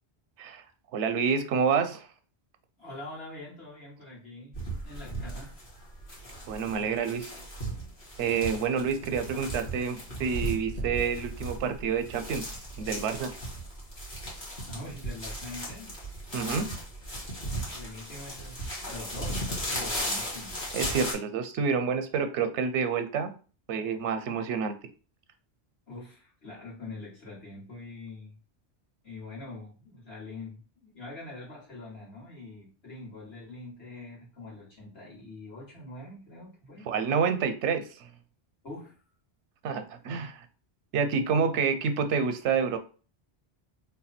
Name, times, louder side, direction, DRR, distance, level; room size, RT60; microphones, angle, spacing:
voice 1, 0.9-2.1 6.5-7.3 8.2-13.3 16.3-16.7 20.7-23.3 23.7-24.7 36.9-38.1 39.6-40.5 40.9-42.8, right 6 dB, 90° right, 8 dB, 0.9 m, -28 dB
voice 2, 2.8-4.6 4.8-5.5 14.6-15.9 17.3-20.7 25.9-28.4 29.0-36.9 38.6-39.0, left 2 dB, 65° left, -6 dB, 2.1 m, -44 dB
sound 1, 4.5-21.1, right 1 dB, 45° left, 1.5 m, -36 dB
3.5 x 2.2 x 4.2 m, 0.37 s
omnidirectional pair, 1.1 m